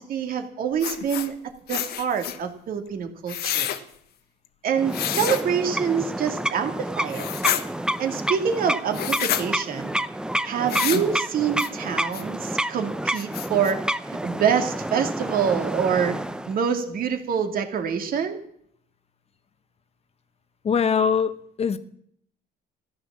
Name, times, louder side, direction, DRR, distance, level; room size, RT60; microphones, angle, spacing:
voice 1, 0.0-1.3 1.7-3.7 4.6-7.2 8.0-10.0 10.4-16.2 16.5-18.4, right 7 dB, 60° right, 5 dB, 2.4 m, -26 dB
sound 1, 0.8-1.3 1.7-2.4 3.3-3.8 4.9-5.4 7.1-7.6 8.9-9.4 10.7-11.1 11.6-11.7 12.1-12.2 12.7-12.8 13.2-13.7, left 11 dB, 70° left, 1.4 m, -28 dB
sound 2, 4.8-16.6, right 1 dB, 5° right, 0.7 m, -29 dB
voice 2, 20.6-21.8, left 6 dB, 40° left, 12 dB, 1.0 m, -22 dB
14.5 x 11.0 x 7.4 m, 0.67 s
cardioid pair, 110°, 17 cm